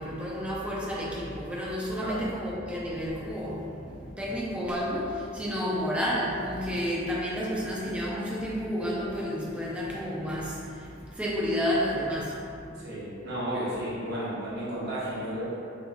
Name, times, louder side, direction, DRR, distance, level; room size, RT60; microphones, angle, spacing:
voice 1, 0.0-12.4, equal, 5° right, -5 dB, 0.3 m, -31 dB
voice 2, 12.7-15.5, right 1 dB, 55° right, -8 dB, 0.8 m, -33 dB
3.0 x 2.3 x 2.4 m, 2.5 s
head